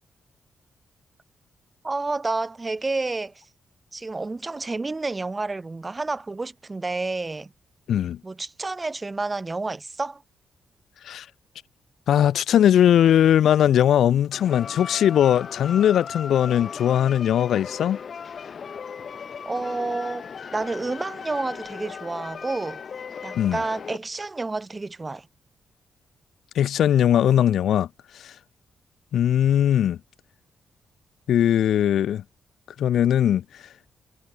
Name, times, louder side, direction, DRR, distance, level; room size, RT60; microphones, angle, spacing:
voice 1, 1.8-3.4 3.9-7.5 8.2-10.2 19.4-20.2 20.5-22.8 23.2-25.3, right 3 dB, 25° right, 1.6 m, -29 dB
voice 2, 12.1-18.0 23.4-23.6 26.6-27.9 28.2-28.3 29.1-30.0 31.3-32.2 32.8-33.4, left 10 dB, 80° left, 0.3 m, -19 dB
sound 1, 14.3-24.0, left 6 dB, 50° left, 1.2 m, -37 dB
cardioid pair, 105°, 0 cm